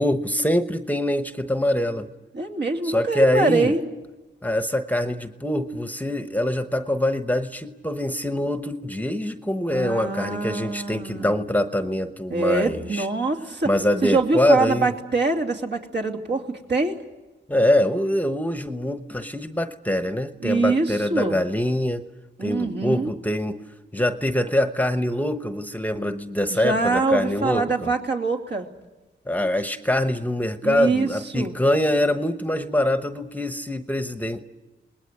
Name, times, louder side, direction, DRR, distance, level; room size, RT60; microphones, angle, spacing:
voice 1, 0.0-2.1 2.8-3.7 4.4-13.1 13.7-14.9 17.5-22.0 22.4-23.6 23.9-27.9 29.3-34.4, left 1 dB, 10° left, 8 dB, 1.0 m, -24 dB
voice 2, 2.3-3.8 9.7-11.3 12.3-13.7 14.0-17.0 20.4-21.4 22.4-23.1 26.5-28.7 30.6-31.6, right 3 dB, 60° right, 2 dB, 2.9 m, -24 dB
29.0 x 20.0 x 8.3 m, 1.1 s
wide cardioid pair, 115°, 20 cm